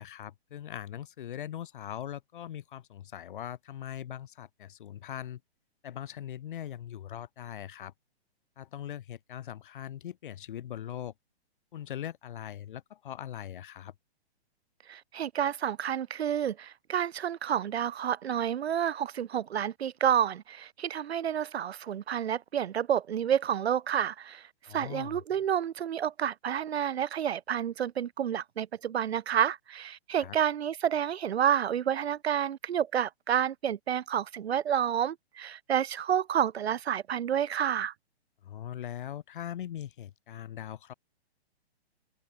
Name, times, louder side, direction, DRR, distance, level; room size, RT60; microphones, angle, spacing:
voice 1, 0.0-5.4 5.8-7.9 8.6-11.1 11.7-13.9 24.7-25.2 30.2-30.4 38.4-40.9, left 11 dB, 50° left, 2.7 m, -41 dB
voice 2, 14.9-24.4 24.7-37.9, right 9 dB, 70° right, 1.1 m, -29 dB
open air
hypercardioid pair, 165°, 32 cm